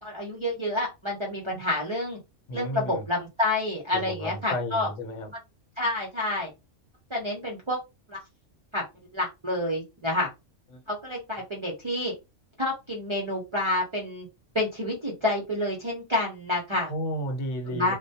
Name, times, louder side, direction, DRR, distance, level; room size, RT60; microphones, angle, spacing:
voice 1, 0.0-2.2 2.5-4.9 5.8-6.5 7.1-7.8 8.1-8.2 8.7-8.8 9.1-10.3 10.9-12.1 12.6-14.3 14.5-16.9 17.7-17.9, left 1 dB, 40° right, 0.4 m, -28 dB
voice 2, 2.5-3.1 3.9-5.3 10.7-10.8 16.9-17.9, equal, 75° left, 1.0 m, -33 dB
2.1 x 2.1 x 2.6 m
omnidirectional pair, 1.3 m